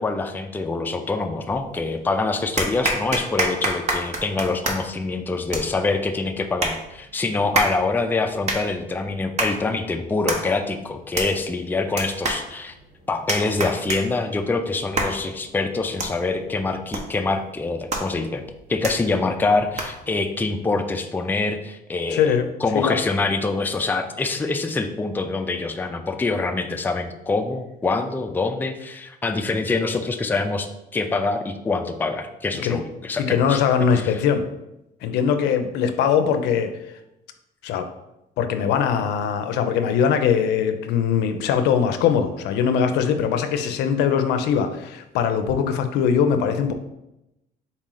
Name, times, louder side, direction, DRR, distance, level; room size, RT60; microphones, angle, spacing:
voice 1, 0.0-12.7 13.1-18.4 18.7-22.4 22.6-33.6 33.9-34.2, left 3 dB, 10° left, 5 dB, 0.4 m, -25 dB
sound 1, 1.5-2.0 2.6-20.1, right 2 dB, 40° right, 0.9 m, -30 dB
voice 2, 22.1-22.5 22.7-23.0 32.6-32.8 33.2-34.4 35.0-36.7 37.6-37.9 38.4-46.7, left 7 dB, 85° left, 8 dB, 0.5 m, -21 dB
4.2 x 3.0 x 3.8 m, 0.89 s
cardioid pair, 110°, 17 cm